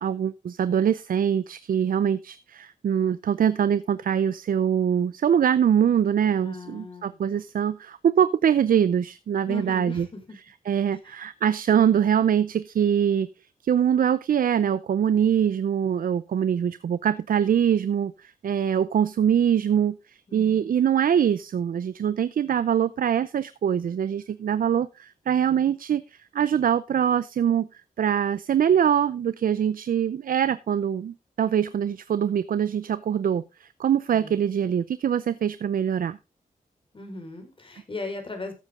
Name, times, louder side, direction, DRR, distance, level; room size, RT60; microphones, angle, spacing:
voice 1, 0.0-10.1 10.7-13.3 13.6-36.2, right 8 dB, 75° right, 16 dB, 0.6 m, -23 dB
voice 2, 6.4-7.2 9.5-10.2 11.0-11.2 20.3-20.7 34.1-34.4 36.9-38.5, left 3 dB, 35° left, 5 dB, 5.0 m, -38 dB
14.0 x 8.3 x 3.7 m, 0.27 s
cardioid pair, 70°, 15 cm